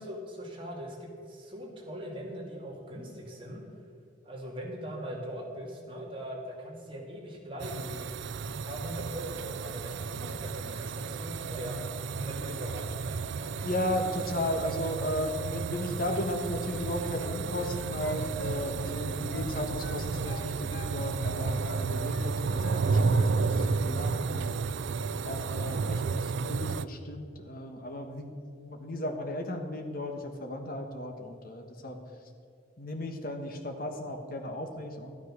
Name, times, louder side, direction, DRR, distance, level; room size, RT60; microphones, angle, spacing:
voice 1, 0.0-3.6 4.2-11.8 12.1-13.5, equal, 30° right, -2 dB, 2.5 m, -41 dB
sound 1, 7.6-26.8, right 4 dB, 70° right, 0.4 m, -32 dB
voice 2, 13.6-24.5 25.2-32.0 32.8-35.1, left 1 dB, 50° left, 4 dB, 1.4 m, -35 dB
sound 2, 17.0-17.7 18.0-19.5 19.8-20.9 21.2-22.3 22.6-23.7 24.0-24.2, left 1 dB, 65° left, 1.7 m, -45 dB
13.0 x 9.9 x 6.4 m, 2.4 s
head